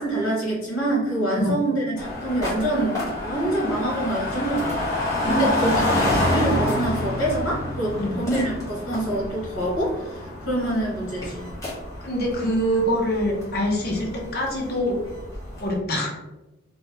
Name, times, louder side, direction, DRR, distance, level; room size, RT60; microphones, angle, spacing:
voice 1, 0.0-11.5, right 1 dB, 70° left, -3 dB, 1.3 m, -26 dB
sound 1, 2.0-15.8, left 1 dB, 15° left, 0.9 m, -28 dB
voice 2, 5.2-6.2 8.0-8.2 12.0-15.0 15.6-16.2, equal, 50° left, -1 dB, 0.7 m, -25 dB
3.0 x 2.2 x 3.1 m, 0.99 s
head